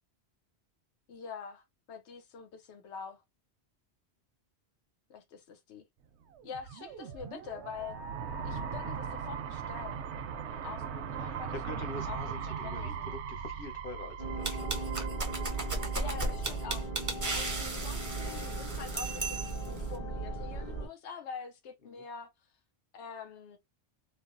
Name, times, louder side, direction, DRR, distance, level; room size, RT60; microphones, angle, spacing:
voice 1, 1.1-3.2 5.1-5.8 6.4-8.0 8.4-10.2 10.5-11.5 12.0-12.2 12.5-13.2 15.9-16.9 17.3-19.4 19.6-22.3 22.9-23.6, left 6 dB, 90° left, 0.9 m, -45 dB
sound 1, 6.3-17.3, right 6 dB, 90° right, 0.9 m, -39 dB
voice 2, 11.2-14.8 16.0-16.4 21.8-22.0, left 2 dB, 60° left, 1.1 m, -45 dB
sound 2, 14.2-20.9, right 3 dB, 40° left, 1.4 m, -37 dB
sound 3, 14.4-19.8, right 2 dB, 25° right, 0.4 m, -36 dB
3.2 x 2.1 x 2.4 m
omnidirectional pair, 1.1 m